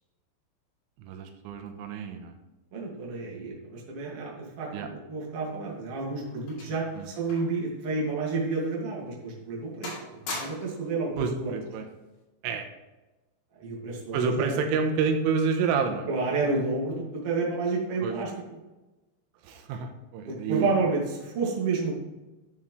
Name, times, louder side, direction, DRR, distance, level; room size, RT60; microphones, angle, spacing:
voice 1, 1.0-2.3 4.7-4.9 7.0-7.1 11.2-11.9 12.4-12.7 14.1-16.1 18.0-18.1 19.4-20.7, right 5 dB, 90° right, 5 dB, 3.4 m, -28 dB
voice 2, 2.7-10.0 10.4-11.5 13.6-14.6 16.1-18.3 20.3-21.9, right 3 dB, 45° right, -3 dB, 2.1 m, -30 dB
sound 1, 5.5-7.6 7.9-8.1 8.7-8.9 9.3-9.6 9.8-10.9 11.9-12.2, left 2 dB, 55° left, 3.9 m, -41 dB
11.0 x 7.4 x 3.2 m, 1.1 s
omnidirectional pair, 5.6 m